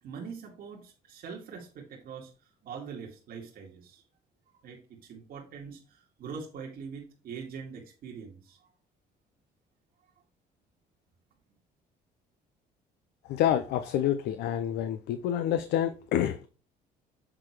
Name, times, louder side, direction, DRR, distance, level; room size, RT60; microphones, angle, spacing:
voice 1, 0.0-4.0 4.6-8.7, right 6 dB, 60° right, -1 dB, 2.1 m, -43 dB
voice 2, 13.3-16.5, left 11 dB, 75° left, 10 dB, 0.6 m, -28 dB
7.8 x 3.9 x 4.6 m, 0.36 s
cardioid pair, 110°, 17 cm